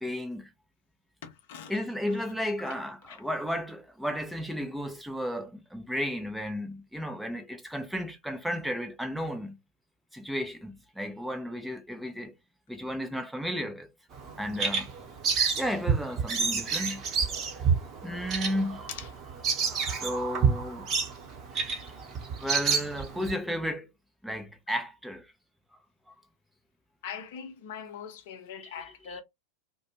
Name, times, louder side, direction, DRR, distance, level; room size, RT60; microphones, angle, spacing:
voice 1, 0.0-0.5 1.7-9.6 10.1-12.3 12.7-13.9 14.4-14.9 15.6-17.0 18.0-18.9 20.0-20.9 21.7-21.8 22.4-23.9 24.2-25.3 28.6-28.7 29.1-29.2, equal, ahead, 0.5 m, -33 dB
voice 2, 1.2-1.7 2.6-2.7 3.1-3.2 18.9-19.1 27.0-29.2, left 7 dB, 50° left, 0.6 m, -41 dB
Bird vocalization bird call bird song, 14.1-23.3, right 6 dB, 30° right, 1.0 m, -29 dB
2.4 x 2.2 x 2.8 m
figure-of-eight pair, 90°, 0 cm